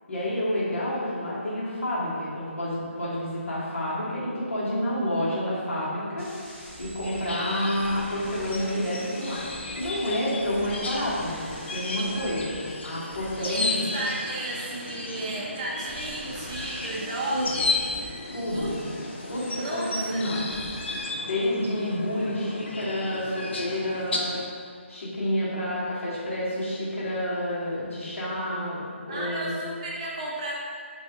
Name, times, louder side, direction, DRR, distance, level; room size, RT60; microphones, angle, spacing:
voice 1, 0.1-6.3 6.8-9.4 9.8-11.4 11.7-12.6 12.8-13.8 17.3-17.5 18.3-18.7 19.3-20.4 21.3-24.4 24.9-29.6, left 1 dB, 80° left, -8 dB, 1.2 m, -29 dB
sound 1, 6.2-21.0, equal, 10° left, 1.1 m, -45 dB
sound 2, 7.0-24.5, left 3 dB, 60° left, 0.4 m, -34 dB
voice 2, 13.4-17.6 18.5-18.9 19.5-20.3 29.1-30.5, right 2 dB, 25° right, -4 dB, 0.5 m, -33 dB
2.5 x 2.4 x 3.5 m, 2.1 s
hypercardioid pair, 165°, 7 cm